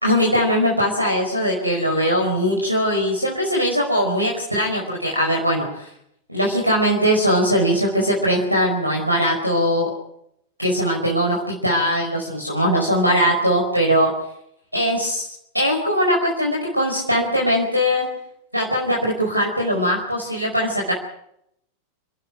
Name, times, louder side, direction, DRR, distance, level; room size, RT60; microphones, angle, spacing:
voice 1, 0.0-5.9 6.3-9.9 10.6-14.1 14.7-15.3 15.5-18.1 18.5-20.9, equal, 90° right, 0 dB, 4.7 m, -20 dB
29.5 x 11.5 x 9.2 m, 0.76 s
figure-of-eight pair, 90°, 0 cm